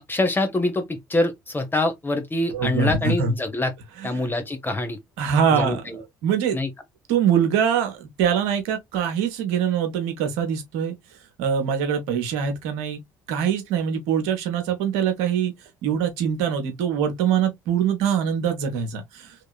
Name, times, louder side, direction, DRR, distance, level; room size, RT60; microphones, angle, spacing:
voice 1, 0.1-3.7 4.0-5.0 5.5-6.0 6.5-6.7, left 2 dB, 20° left, 1.0 m, -25 dB
voice 2, 2.5-3.4 4.0-4.1 5.2-6.6 7.1-10.9 11.4-13.0 13.3-15.5 15.8-19.3, right 7 dB, 70° right, 0.9 m, -23 dB
3.1 x 2.8 x 2.3 m
hypercardioid pair, 50°, 11 cm